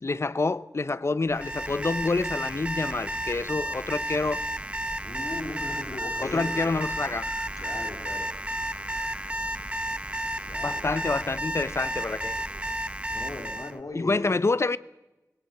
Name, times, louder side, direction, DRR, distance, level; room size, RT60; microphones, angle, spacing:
voice 1, 0.0-4.4 6.2-7.3 10.6-12.4 13.9-14.8, left 3 dB, 45° left, 0.7 m, -27 dB
Alarm, 1.3-13.8, right 1 dB, 20° right, 0.8 m, -32 dB
voice 2, 5.0-6.5 7.6-8.3 10.5-11.1 13.1-14.4, left 2 dB, 70° left, 3.9 m, -38 dB
Wind, 5.1-11.5, left 3 dB, 90° left, 7.4 m, -50 dB
21.0 x 17.5 x 8.4 m
wide cardioid pair, 80°, 6 cm